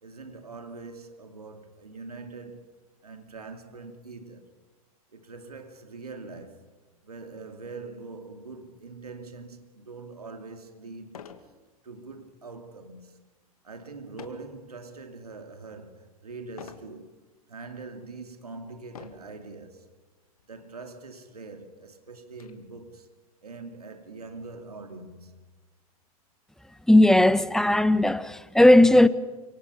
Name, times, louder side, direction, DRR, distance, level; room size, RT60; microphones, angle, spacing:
voice 1, 0.0-2.7 3.0-4.5 5.1-6.7 7.0-11.4 11.8-13.2 13.6-17.2 17.5-19.9 20.5-23.1 23.4-25.5, right 3 dB, 90° right, 2.7 m, -43 dB
sound 1, 10.1-10.2 11.1-11.5 12.0-12.3 14.2-14.5 15.2-15.6 16.6-16.9 17.7-17.8 18.9-19.4 20.4-20.5 20.8-20.9 21.4-22.5, left 8 dB, 75° left, 2.4 m, -46 dB
voice 2, 26.9-29.1, left 1 dB, 5° left, 1.2 m, -17 dB
29.0 x 26.0 x 5.6 m
hypercardioid pair, 90°, 19 cm